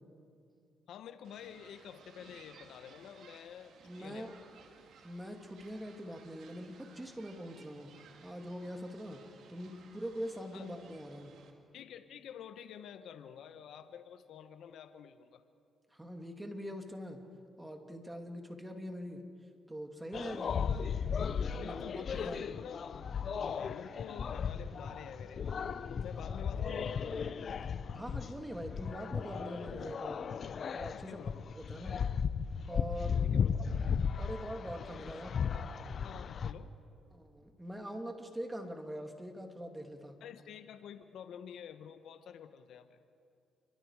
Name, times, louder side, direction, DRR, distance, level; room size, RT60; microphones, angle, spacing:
voice 1, 0.9-4.4 10.5-10.7 11.7-15.4 21.5-22.9 23.4-25.5 25.9-27.1 30.9-31.4 33.2-33.7 36.0-36.7 40.2-43.0, left 8 dB, 75° left, 9 dB, 1.1 m, -49 dB
sound 1, 1.2-11.5, right 6 dB, 70° right, 2.6 m, -59 dB
voice 2, 3.8-4.3 5.0-7.9 8.2-9.2 9.5-11.4 15.9-17.2 17.6-19.2 19.7-20.7 21.5-22.4 26.1-26.3 27.9-30.2 30.7-31.2 31.6-32.0 32.7-33.2 34.2-35.4 37.1-40.1, equal, 10° right, 4 dB, 2.7 m, -43 dB
sound 2, 20.1-36.5, left 6 dB, 55° left, 0.8 m, -36 dB
28.5 x 25.0 x 4.9 m, 2.4 s
cardioid pair, 75°, 0 cm